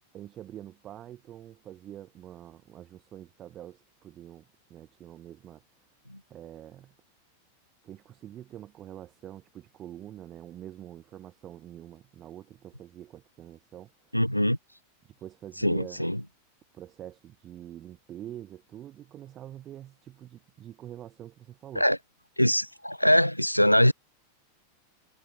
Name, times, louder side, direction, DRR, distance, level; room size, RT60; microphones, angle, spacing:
voice 1, 0.1-5.6 6.3-6.9 7.8-14.2 15.2-16.1 16.7-21.9, right 12 dB, 30° right, 8.0 m, -45 dB
voice 2, 14.1-14.6 15.6-16.2 21.8-22.0 22.4-23.9, equal, 90° left, 2.0 m, -23 dB
figure-of-eight pair, 90°, 0 cm